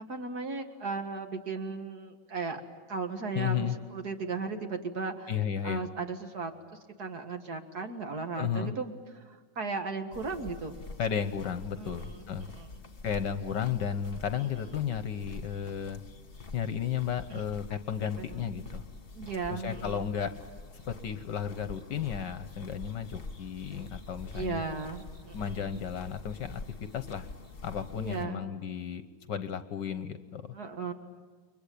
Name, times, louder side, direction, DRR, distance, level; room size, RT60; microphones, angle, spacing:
voice 1, 0.0-2.6 2.9-5.3 5.6-6.5 7.0-10.8 11.8-12.7 17.3-17.4 18.3-18.4 19.2-20.1 24.3-25.7 28.0-28.4 30.5-30.9, right 4 dB, 50° right, 5 dB, 2.2 m, -36 dB
voice 2, 3.3-3.8 5.3-5.8 8.4-8.7 11.0-12.5 13.0-16.0 16.5-18.8 19.5-20.3 20.8-24.6 25.3-26.6 26.9-27.3 27.6-29.0 29.3-30.5, left 8 dB, 60° left, 11 dB, 1.5 m, -33 dB
sound 1, 10.1-28.2, left 3 dB, 30° left, 1.7 m, -46 dB
30.0 x 23.5 x 8.5 m, 1.4 s
omnidirectional pair, 2.4 m